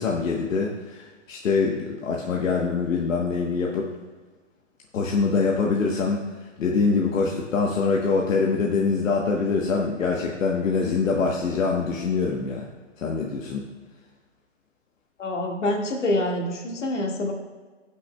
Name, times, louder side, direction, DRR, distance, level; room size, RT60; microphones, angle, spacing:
voice 1, 0.0-3.9 4.9-6.2 6.6-12.7 13.0-13.7, left 4 dB, 90° left, -1 dB, 1.2 m, -24 dB
voice 2, 15.2-17.3, left 1 dB, 70° left, 0 dB, 1.9 m, -26 dB
17.5 x 6.0 x 2.2 m, 1.4 s
hypercardioid pair, 175°, 38 cm